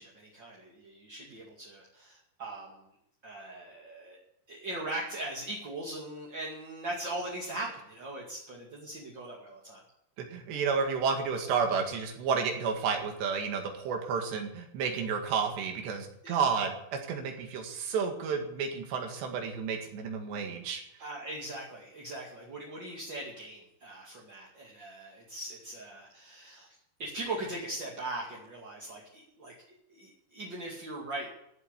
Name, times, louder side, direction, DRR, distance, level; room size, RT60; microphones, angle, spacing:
voice 1, 0.0-2.8 3.2-4.2 4.5-9.8 16.2-16.4 21.0-26.7 27.0-29.5 29.9-31.3, right 2 dB, 35° right, -3 dB, 2.1 m, -40 dB
voice 2, 10.2-20.8, right 5 dB, 75° right, 4 dB, 4.1 m, -31 dB
15.0 x 8.1 x 8.2 m, 0.78 s
omnidirectional pair, 5.1 m